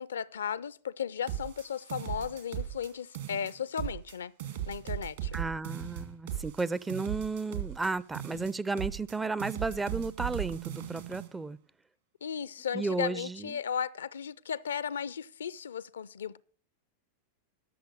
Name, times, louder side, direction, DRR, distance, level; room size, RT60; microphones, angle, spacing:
voice 1, 0.0-4.3 4.7-5.4 12.2-16.4, left 7 dB, 65° left, 0.4 m, -35 dB
sound 1, 1.3-2.9 3.1-4.1 4.4-9.1 9.4-11.3, right 11 dB, 60° right, 2.1 m, -37 dB
voice 2, 5.3-11.6 12.7-13.6, right 3 dB, 10° right, 0.4 m, -33 dB
12.5 x 6.8 x 6.3 m
figure-of-eight pair, 90°, 0 cm